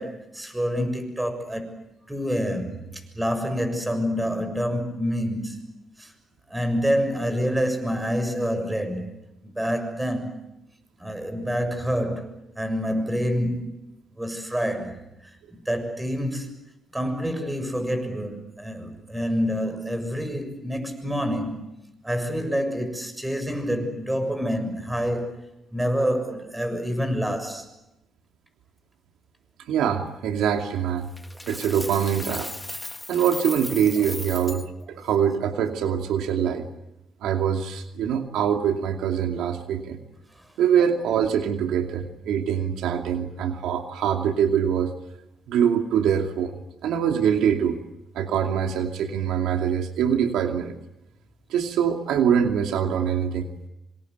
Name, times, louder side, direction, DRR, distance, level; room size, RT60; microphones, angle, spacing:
voice 1, 0.0-1.8 2.1-6.1 6.5-9.1 9.4-10.4 11.0-13.7 14.2-15.0 15.5-16.5 16.9-21.6 22.0-25.4 25.7-27.7, equal, 10° right, 6.9 m, -27 dB
voice 2, 29.7-31.1 31.5-32.5 33.1-36.7 37.2-40.0 40.6-44.9 45.5-46.5 46.8-47.8 48.1-50.7 51.5-53.5, right 8 dB, 85° right, 2.6 m, -24 dB
Coin (dropping), 31.2-34.7, left 1 dB, 10° left, 1.5 m, -36 dB
26.5 x 26.0 x 8.1 m
cardioid pair, 90°, 0 cm